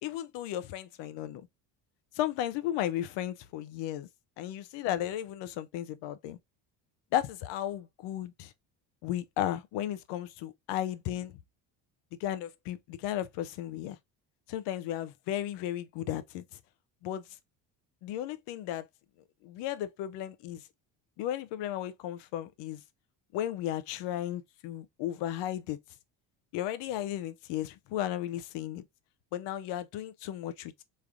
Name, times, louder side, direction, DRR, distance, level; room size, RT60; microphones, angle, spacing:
voice 1, 0.0-1.5 2.2-4.1 4.4-6.4 7.1-8.5 9.0-11.4 12.2-14.0 14.5-16.4 17.0-17.2 18.0-18.8 19.4-20.6 21.2-22.8 23.3-25.8 26.5-28.8 29.3-30.7, left 12 dB, 75° left, 0.7 m, -34 dB
3.6 x 3.3 x 2.5 m
supercardioid pair, 100°, 44 cm